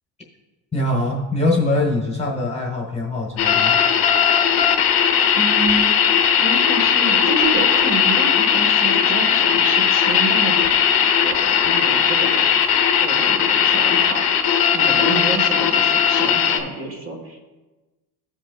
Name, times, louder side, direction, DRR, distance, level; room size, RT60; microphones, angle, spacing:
voice 1, 0.7-3.8, left 2 dB, 15° left, -2 dB, 1.3 m, -22 dB
sound 1, 3.4-16.6, left 8 dB, 50° left, 1.0 m, -17 dB
voice 2, 5.3-5.9 6.4-10.7 11.0-12.5 13.0-14.3 14.7-17.4, right 2 dB, 30° right, 0 dB, 1.5 m, -28 dB
15.5 x 5.4 x 2.4 m, 1.2 s
cardioid pair, 150°, 46 cm